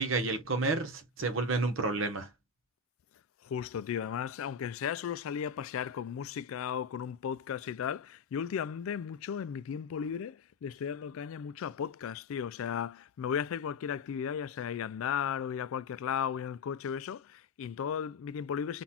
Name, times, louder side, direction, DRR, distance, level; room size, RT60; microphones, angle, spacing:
voice 1, 0.0-2.3, right 3 dB, 60° right, 1.0 m, -30 dB
voice 2, 3.4-18.8, left 8 dB, 70° left, 0.3 m, -35 dB
3.9 x 2.4 x 2.9 m
head